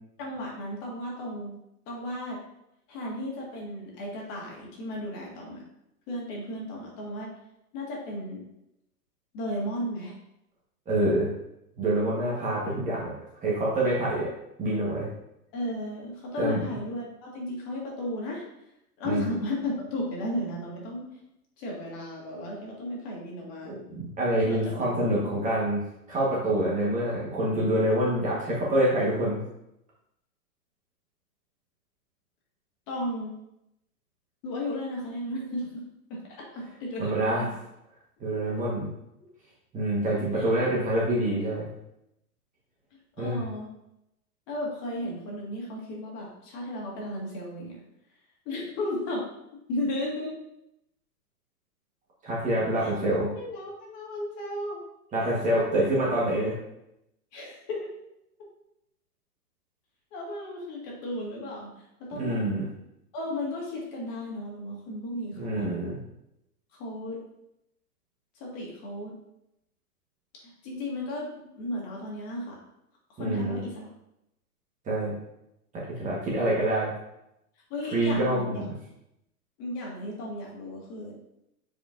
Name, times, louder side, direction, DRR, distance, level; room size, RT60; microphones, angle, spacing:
voice 1, 0.2-1.5 1.9-2.4 2.9-5.6 6.1-7.3 7.7-8.4 9.3-10.1 15.5-18.4 19.0-21.1 21.6-23.8 24.4-25.0 32.9-33.3 34.4-35.8 36.1-37.5 38.3-38.6 40.3-40.5 42.9-43.7 44.5-47.8 48.5-49.3 49.7-50.3 52.8-52.9 53.3-54.8 55.2-55.8 56.2-56.4 57.3-57.9 60.1-62.4 63.1-65.7 66.8-67.2 68.4-69.2 70.4-72.6 73.1-73.9 77.7-78.6 79.6-81.1, left 1 dB, 35° left, -3 dB, 2.0 m, -34 dB
voice 2, 10.9-11.3 11.8-13.1 13.4-14.3 14.6-15.1 16.4-16.6 19.0-19.3 23.6-25.8 26.1-29.4 37.0-37.5 38.2-38.9 39.7-41.7 43.2-43.4 52.2-53.3 55.1-56.5 62.1-62.7 65.3-66.0 73.2-73.6 74.8-75.1 75.7-76.9 77.9-78.6, right 1 dB, 15° right, -6 dB, 1.5 m, -26 dB
8.5 x 4.9 x 2.7 m, 0.83 s
hypercardioid pair, 145°, 47 cm